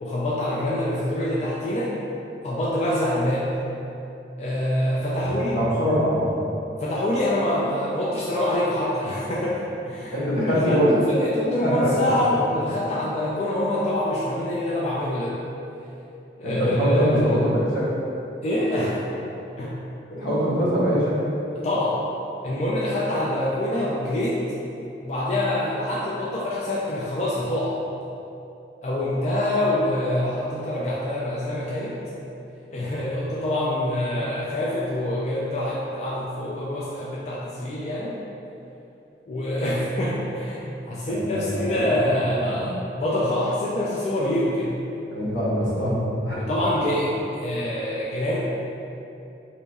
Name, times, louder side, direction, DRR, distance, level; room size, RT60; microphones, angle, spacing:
voice 1, 0.0-2.0 2.4-3.6 4.4-5.6 6.8-10.2 10.5-15.4 16.4-17.4 18.4-19.0 19.6-19.8 21.6-22.0 22.4-24.4 25.0-27.8 28.8-32.0 32.7-38.2 39.3-44.8 46.3-48.4, left 1 dB, 40° left, -6 dB, 0.3 m, -25 dB
voice 2, 5.5-6.4 10.1-10.9 11.6-11.9 16.4-17.9 20.1-21.2 41.1-42.7 45.1-46.5, equal, 80° left, -9 dB, 1.0 m, -23 dB
2.9 x 2.3 x 4.0 m, 2.8 s
head